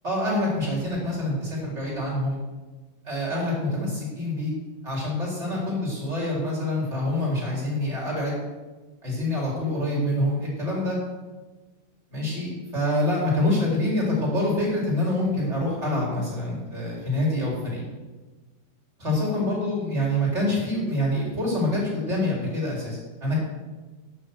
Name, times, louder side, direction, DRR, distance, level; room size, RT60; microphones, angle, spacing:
voice 1, 0.0-2.4 3.0-4.5 4.8-8.4 9.0-11.0 12.1-17.8 19.0-23.4, left 1 dB, 15° right, -5 dB, 3.8 m, -26 dB
10.5 x 8.9 x 6.4 m, 1.2 s
omnidirectional pair, 4.8 m